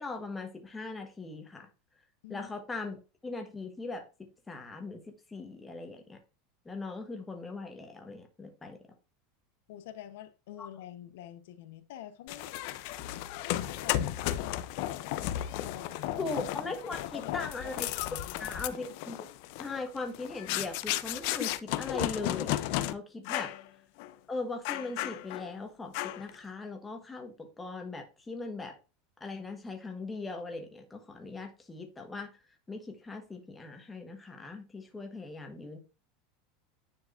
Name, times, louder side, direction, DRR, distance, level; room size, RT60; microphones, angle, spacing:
voice 1, 0.0-1.7 2.3-5.0 5.3-6.2 6.6-8.8 10.6-10.7 16.2-17.9 18.4-19.3 19.6-23.5 24.3-28.7 29.2-32.3 32.7-35.8, left 3 dB, 10° left, 1.2 m, -39 dB
voice 2, 9.7-12.6 13.4-14.9 15.6-16.3 17.0-18.6 23.2-23.3, left 12 dB, 70° left, 0.8 m, -47 dB
sound 1, 12.3-22.9 23.3-23.6 24.0-24.1 24.7-25.5 25.9-26.4, left 14 dB, 50° left, 0.5 m, -34 dB
9.6 x 4.6 x 2.5 m
supercardioid pair, 170°, 0 cm